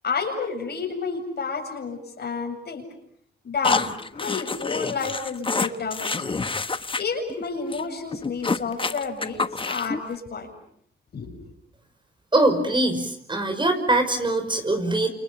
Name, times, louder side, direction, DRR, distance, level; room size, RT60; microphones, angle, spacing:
voice 1, 0.0-2.8 3.4-6.4 7.0-9.4 9.6-10.5 11.1-11.3, left 5 dB, 55° left, 4 dB, 7.4 m, -30 dB
sound 1, 3.6-7.0 7.3-7.4 7.7-7.8 8.1-10.0, left 3 dB, 25° left, 1.3 m, -27 dB
voice 2, 12.3-15.1, right 2 dB, 25° right, 7 dB, 5.8 m, -22 dB
29.0 x 28.5 x 7.1 m, 0.68 s
cardioid pair, 85°, 20 cm